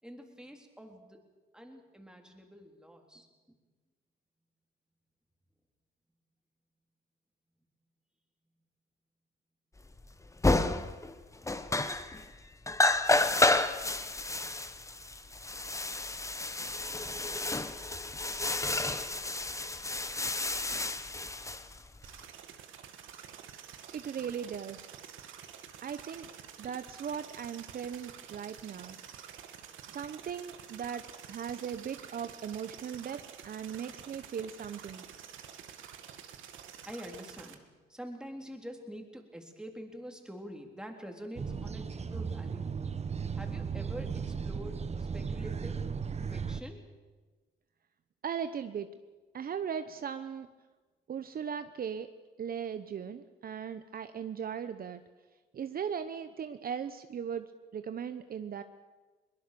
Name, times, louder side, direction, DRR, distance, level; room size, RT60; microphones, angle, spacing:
voice 1, 0.0-1.2 1.5-3.3 24.1-24.4 36.9-37.6 37.9-42.7 43.3-44.8 45.1-45.8 46.3-46.8, equal, 5° right, 3 dB, 3.7 m, -46 dB
sound 1, 10.0-10.1 10.4-11.1 11.4-12.3 12.7-22.2, left 2 dB, 15° left, 1.2 m, -30 dB
sound 2, 22.0-37.5, right 9 dB, 80° right, 1.8 m, -49 dB
voice 2, 23.9-24.9 25.8-26.3 26.6-29.0 29.9-35.0 48.2-48.9 49.3-50.5 51.1-52.1 52.4-55.0 55.5-58.6, right 7 dB, 50° right, 10 dB, 0.9 m, -38 dB
sound 3, 41.4-46.6, right 6 dB, 35° right, 1.2 m, -36 dB
22.5 x 20.5 x 6.9 m, 1.3 s
cardioid pair, 90°, 20 cm